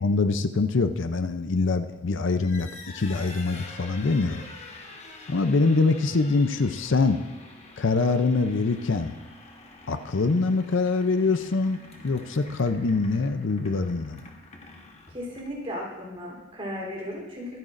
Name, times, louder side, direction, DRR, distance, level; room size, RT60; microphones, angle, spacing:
voice 1, 0.0-2.7 2.9-4.4 5.3-7.2 7.8-9.1 9.9-14.2, left 3 dB, 60° left, 9 dB, 0.6 m, -24 dB
sound 1, 2.3-15.7, left 2 dB, 30° left, 1.2 m, -46 dB
voice 2, 15.1-17.6, equal, 25° right, -3 dB, 3.5 m, -35 dB
24.0 x 9.1 x 2.6 m, 1.1 s
head